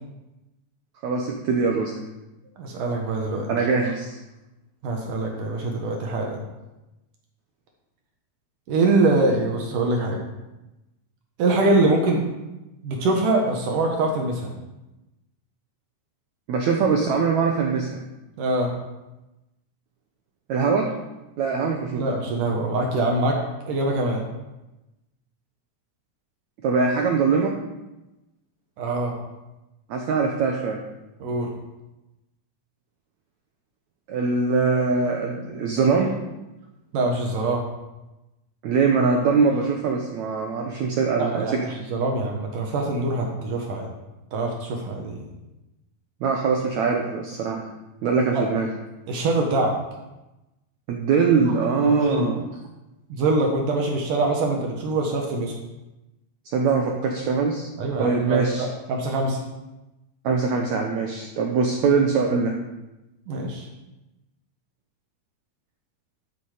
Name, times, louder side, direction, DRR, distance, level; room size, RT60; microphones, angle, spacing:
voice 1, 1.0-1.9 3.5-4.2 16.5-18.0 20.5-20.9 21.4-22.0 26.6-27.5 29.9-30.8 34.1-36.1 38.6-41.5 46.2-47.6 48.0-48.7 50.9-52.4 56.5-57.7 58.0-58.7 60.2-62.5, right 5 dB, 90° right, 1 dB, 1.6 m, -22 dB
voice 2, 2.6-3.5 4.8-6.4 8.7-10.2 11.4-12.2 12.8-14.5 18.4-18.7 22.0-23.4 23.7-24.2 28.8-29.1 31.2-31.5 36.9-37.6 41.2-43.9 44.3-45.3 48.3-48.4 49.1-49.7 52.0-52.3 53.1-55.5 57.8-59.4 63.3-63.7, right 2 dB, 65° right, 1 dB, 2.5 m, -24 dB
13.5 x 7.0 x 4.9 m, 1.0 s
omnidirectional pair, 4.6 m